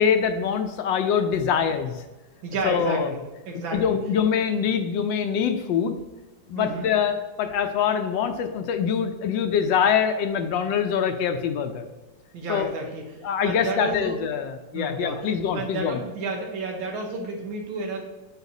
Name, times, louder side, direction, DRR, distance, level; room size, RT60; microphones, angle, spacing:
voice 1, 0.0-2.1 2.6-3.1 3.5-6.0 6.5-11.9 12.5-12.7 13.2-16.0, left 7 dB, 80° left, 7 dB, 1.3 m, -24 dB
voice 2, 2.4-3.9 6.6-6.9 12.3-14.2 14.7-15.2 15.5-18.0, right 3 dB, 90° right, 1 dB, 1.8 m, -31 dB
8.0 x 5.0 x 2.7 m, 1.1 s
omnidirectional pair, 2.1 m